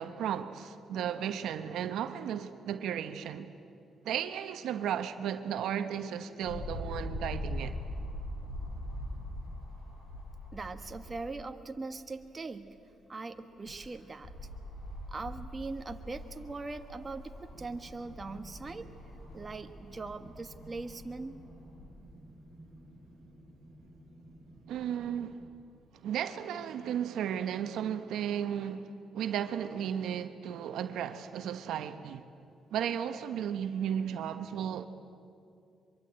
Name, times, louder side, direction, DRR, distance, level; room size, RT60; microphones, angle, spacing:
voice 1, 0.0-3.5 4.0-7.7 24.7-25.4 26.0-32.2 32.7-34.9, right 9 dB, 80° right, 1.1 m, -34 dB
sound 1, 6.4-11.5 11.9-12.0 13.4-21.9 22.7-22.8, left 1 dB, 75° left, 7.3 m, -42 dB
voice 2, 10.5-12.8 13.1-14.3 15.1-18.9 19.3-21.4, right 3 dB, 30° right, 1.4 m, -41 dB
sound 2, 17.5-25.5, right 1 dB, 5° right, 7.9 m, -54 dB
24.0 x 23.0 x 8.9 m
cardioid pair, 90°, 0 cm